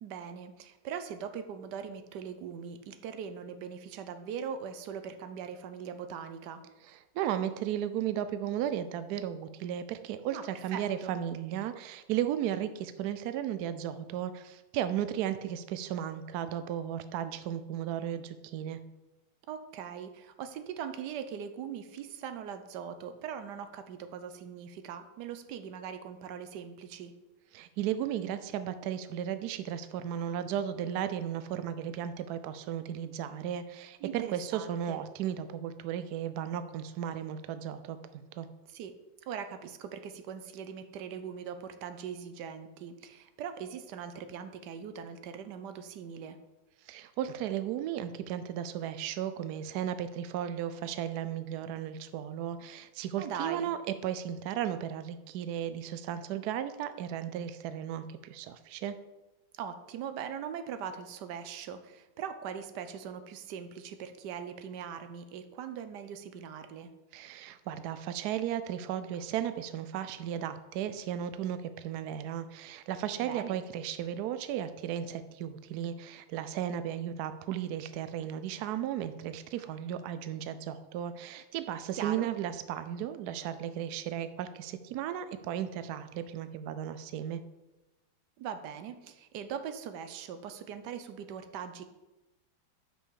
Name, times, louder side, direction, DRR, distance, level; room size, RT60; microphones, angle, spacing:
voice 1, 0.0-6.6 10.3-11.1 19.5-27.1 34.0-35.0 38.7-39.0 39.2-46.4 53.2-53.7 59.5-66.9 73.2-73.6 82.0-82.3 88.4-91.8, right 7 dB, 70° right, 10 dB, 1.1 m, -41 dB
voice 2, 6.9-18.8 27.5-38.5 46.9-53.8 54.0-59.0 67.1-87.4, right 10 dB, 90° right, 11 dB, 0.8 m, -35 dB
6.1 x 5.5 x 6.4 m, 1.0 s
omnidirectional pair, 2.2 m